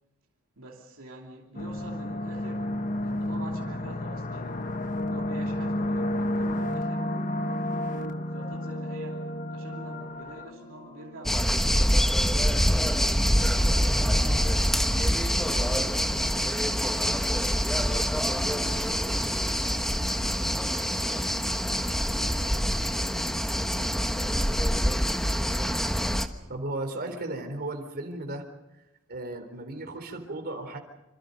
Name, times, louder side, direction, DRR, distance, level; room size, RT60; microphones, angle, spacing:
voice 1, 0.6-2.7 3.0-4.6 5.1-12.6 13.5-17.3 17.7-20.6 20.9-25.9, right 2 dB, 65° right, 3.0 m, -47 dB
sound 1, 1.5-11.3, left 1 dB, 35° left, 1.3 m, -31 dB
sound 2, 11.2-26.3, equal, ahead, 1.3 m, -25 dB
voice 2, 26.5-28.5 29.1-30.8, right 2 dB, 45° right, 4.0 m, -35 dB
27.0 x 27.0 x 5.4 m
head